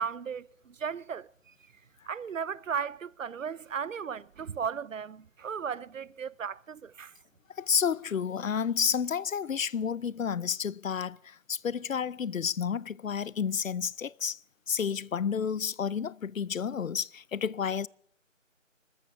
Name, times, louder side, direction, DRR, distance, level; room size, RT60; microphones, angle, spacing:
voice 1, 0.0-1.5 2.1-7.1, right 7 dB, 75° right, 0.6 m, -36 dB
voice 2, 7.6-14.4 14.7-17.9, left 7 dB, 85° left, 0.6 m, -30 dB
25.5 x 13.5 x 3.6 m
figure-of-eight pair, 175°, 39 cm